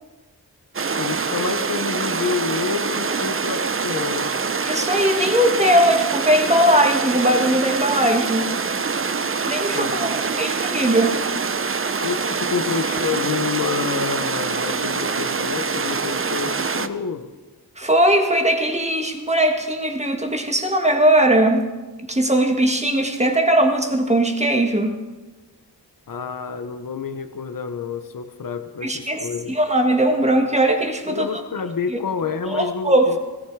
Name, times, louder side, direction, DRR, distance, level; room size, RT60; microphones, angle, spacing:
sound 1, 0.7-16.9, right 5 dB, 35° right, 0.7 m, -25 dB
voice 1, 1.0-4.3 9.7-10.0 12.0-17.3 26.1-29.6 31.1-33.2, left 5 dB, 55° left, 9 dB, 0.9 m, -28 dB
voice 2, 4.7-8.5 9.5-11.2 17.8-21.7 22.1-24.9 28.8-31.3 31.9-32.0 32.5-33.2, right 1 dB, 15° right, 4 dB, 1.7 m, -19 dB
17.5 x 14.0 x 4.7 m, 1.2 s
wide cardioid pair, 90°, 39 cm